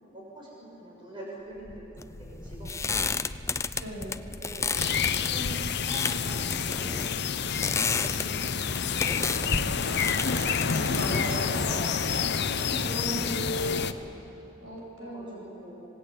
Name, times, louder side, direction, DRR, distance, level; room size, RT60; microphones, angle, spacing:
voice 1, 0.0-3.2 4.3-4.7 5.2-10.4 11.4-11.8 12.5-14.0 15.0-15.8, right 1 dB, 25° right, -4 dB, 7.0 m, -43 dB
Wind, 1.5-6.8, left 1 dB, 75° left, 1.2 m, -46 dB
sound 1, 2.0-12.4, left 4 dB, 15° left, 0.4 m, -32 dB
voice 2, 3.8-4.2 10.7-12.0 14.6-15.5, equal, 80° right, -1 dB, 6.2 m, -38 dB
sound 2, 4.7-13.9, left 6 dB, 55° left, 0.8 m, -28 dB
26.5 x 19.0 x 8.7 m, 3.0 s
head